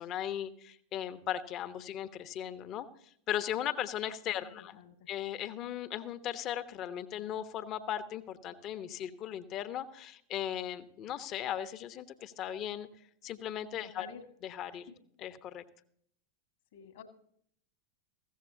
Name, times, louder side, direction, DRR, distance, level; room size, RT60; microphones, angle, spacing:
voice 1, 0.0-2.9 3.3-4.8 5.1-12.9 13.2-14.1 14.4-14.9 15.2-15.6, left 10 dB, 35° left, 13 dB, 1.0 m, -37 dB
voice 2, 4.4-5.1 13.8-14.3 14.7-15.0 16.7-17.0, left 7 dB, 55° left, 6 dB, 1.9 m, -50 dB
15.5 x 14.0 x 2.8 m, 0.65 s
figure-of-eight pair, 90°, 0 cm